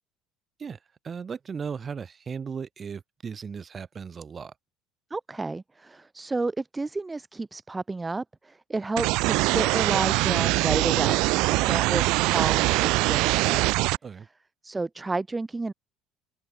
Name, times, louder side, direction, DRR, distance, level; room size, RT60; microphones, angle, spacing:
voice 1, 1.0-4.5 14.0-14.3, right 6 dB, 30° right, 3.0 m, -36 dB
voice 2, 5.1-13.7 14.6-15.7, right 3 dB, 15° right, 1.2 m, -31 dB
sound 1, 9.0-14.0, right 22 dB, 70° right, 0.5 m, -23 dB
supercardioid pair, 95°, 0 cm